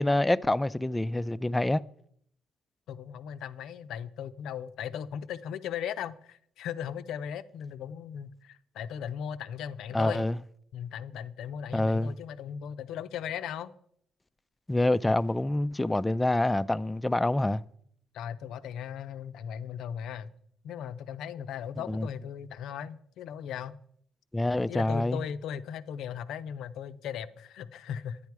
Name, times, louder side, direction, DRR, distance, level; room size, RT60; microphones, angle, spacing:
voice 1, 0.0-1.8 9.9-10.4 11.7-12.1 14.7-17.6 21.9-22.1 24.3-25.2, left 1 dB, 15° left, 0.4 m, -26 dB
voice 2, 2.9-10.2 10.7-13.7 18.1-20.3 20.6-23.8 24.7-28.2, left 8 dB, 80° left, 0.6 m, -37 dB
10.5 x 10.0 x 4.7 m
cardioid pair, 90°, 0 cm